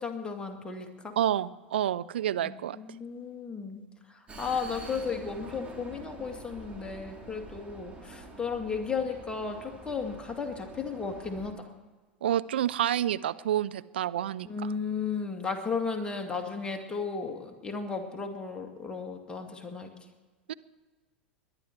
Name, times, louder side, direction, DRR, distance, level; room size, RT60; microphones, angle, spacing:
voice 1, 0.0-1.2 2.4-3.8 4.4-11.7 14.4-19.9, left 5 dB, 15° left, 4 dB, 2.2 m, -34 dB
voice 2, 1.2-2.8 12.2-14.7 20.5-20.6, right 11 dB, 70° right, 15 dB, 0.4 m, -29 dB
Vehicle, 4.3-11.5, right 2 dB, 20° right, 2.9 m, -46 dB
21.5 x 10.5 x 4.6 m, 1.3 s
figure-of-eight pair, 85°, 6 cm